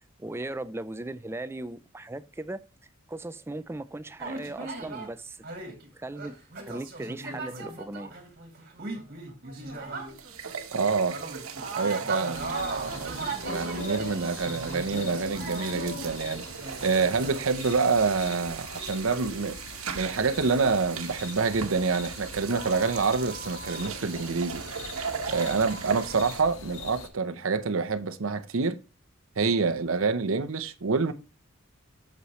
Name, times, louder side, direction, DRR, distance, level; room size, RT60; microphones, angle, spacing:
voice 1, 0.2-2.6 3.1-5.4 5.9-8.1, right 2 dB, 10° right, 0.4 m, -38 dB
sound 1, 4.2-5.1 5.4-10.6 10.9-17.4, right 3 dB, 45° right, 2.5 m, -37 dB
sound 2, 9.7-9.8 10.1-26.4, right 7 dB, 90° right, 1.1 m, -39 dB
voice 2, 10.7-11.2 11.8-16.4 16.8-19.6 19.9-24.6 25.3-28.8 29.4-31.1, right 4 dB, 75° right, 0.7 m, -27 dB
sound 3, 12.3-27.1, left 3 dB, 80° left, 1.6 m, -41 dB
8.2 x 6.3 x 3.1 m
head